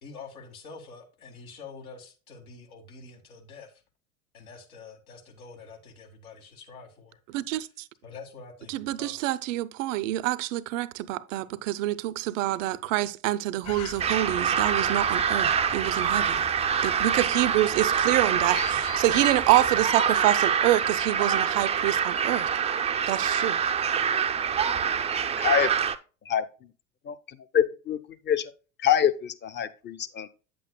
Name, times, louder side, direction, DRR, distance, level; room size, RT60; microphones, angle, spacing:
voice 1, 0.0-3.8 4.3-7.2 8.0-9.2, left 4 dB, 75° left, 2.0 m, -46 dB
voice 2, 7.3-7.9 8.7-16.4 16.8-22.5 23.1-23.6, right 15 dB, 60° right, 0.6 m, -26 dB
sound 1, 13.6-19.9, left 7 dB, 40° left, 1.3 m, -42 dB
sound 2, 14.0-26.0, right 7 dB, 15° right, 0.4 m, -25 dB
voice 3, 25.4-25.7 26.3-26.4 27.1-27.2 27.5-28.0 28.3-28.5 28.8-30.3, left 9 dB, 25° left, 0.7 m, -25 dB
8.5 x 7.7 x 2.2 m
hypercardioid pair, 75°, 43 cm